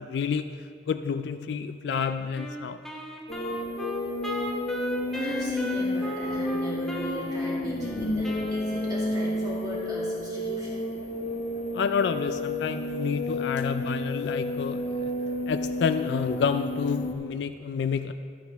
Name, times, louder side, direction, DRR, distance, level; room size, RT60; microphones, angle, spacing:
voice 1, 0.0-2.8 11.7-15.1 15.5-18.1, left 6 dB, 70° left, 10 dB, 0.3 m, -29 dB
Wind instrument woodwind instrument, 1.9-9.4, equal, 5° left, 0.8 m, -37 dB
sound 1, 3.3-17.1, left 1 dB, 45° left, 0.7 m, -31 dB
voice 2, 5.1-10.9, equal, 20° right, -6 dB, 2.4 m, -37 dB
12.0 x 9.1 x 3.5 m, 2.3 s
head